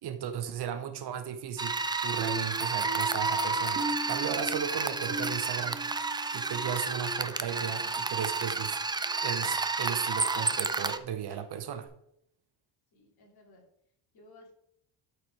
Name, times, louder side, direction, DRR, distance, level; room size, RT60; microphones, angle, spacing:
voice 1, 0.0-5.8 6.3-8.8 9.2-11.9, right 9 dB, 60° right, 10 dB, 1.2 m, -36 dB
sound 1, 1.6-11.0, right 4 dB, 10° right, 0.3 m, -31 dB
sound 2, 2.2-7.8 8.3-8.6 9.1-9.3, right 1 dB, 30° right, 1.3 m, -41 dB
Drum kit / Drum, 4.5-5.9 6.2-11.9, left 1 dB, 25° left, 3.6 m, -57 dB
voice 2, 7.6-8.1 12.9-13.6 14.1-14.5, left 1 dB, 55° left, -1 dB, 3.4 m, -58 dB
12.5 x 4.8 x 4.8 m, 0.73 s
cardioid pair, 140°, 45 cm